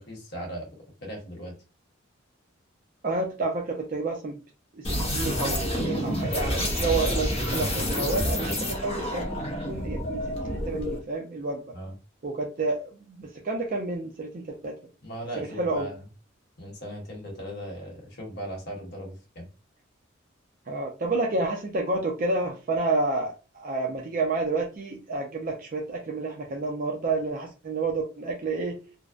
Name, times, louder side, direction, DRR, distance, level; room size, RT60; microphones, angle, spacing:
voice 1, 0.0-1.5 11.7-11.9 15.0-15.9 16.6-19.5, equal, 50° left, -1 dB, 1.0 m, -38 dB
voice 2, 3.0-4.4 4.7-11.6 12.2-14.8 15.4-15.9 20.7-28.8, right 3 dB, 40° right, 1 dB, 0.4 m, -30 dB
sound 1, 4.8-11.0, equal, 30° left, 0.6 m, -28 dB
2.6 x 2.0 x 2.3 m, 0.34 s
head